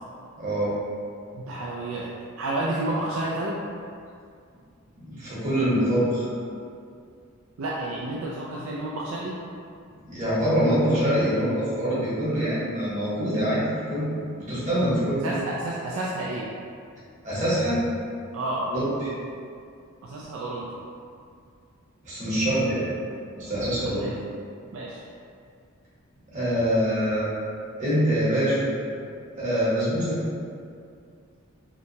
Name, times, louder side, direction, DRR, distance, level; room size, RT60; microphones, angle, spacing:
voice 1, 0.4-0.7 5.0-6.3 10.0-13.6 13.9-14.1 14.4-15.2 17.2-17.8 18.7-19.1 22.0-22.9 23.4-24.1 26.3-27.3 27.8-28.7 29.4-30.2, equal, 35° right, -10 dB, 1.0 m, -24 dB
voice 2, 1.3-2.1 2.4-3.6 7.6-9.4 15.2-16.5 18.3-18.6 20.0-20.7 23.9-24.1 24.7-25.0, right 2 dB, 65° right, -5 dB, 0.3 m, -30 dB
2.8 x 2.2 x 2.7 m, 2.3 s
head